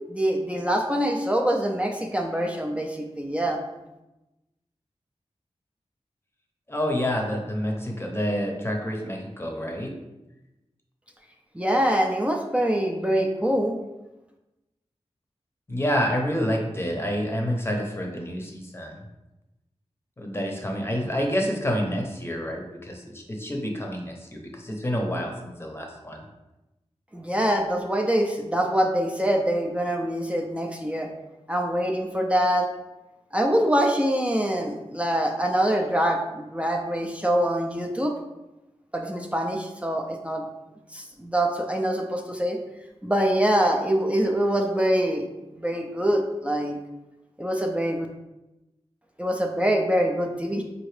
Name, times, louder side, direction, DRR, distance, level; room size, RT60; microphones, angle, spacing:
voice 1, 0.1-3.6 11.5-13.8 27.1-31.1 31.5-32.7 33.3-38.1 38.9-40.4 40.9-42.6 43.0-45.2 45.5-46.8 47.4-48.1 49.2-50.6, right 1 dB, 10° right, 1 dB, 0.5 m, -24 dB
voice 2, 6.7-9.9 15.7-19.0 20.2-26.2, equal, 20° left, 1 dB, 0.8 m, -28 dB
4.6 x 2.6 x 3.2 m, 0.99 s
wide cardioid pair, 65°, 11 cm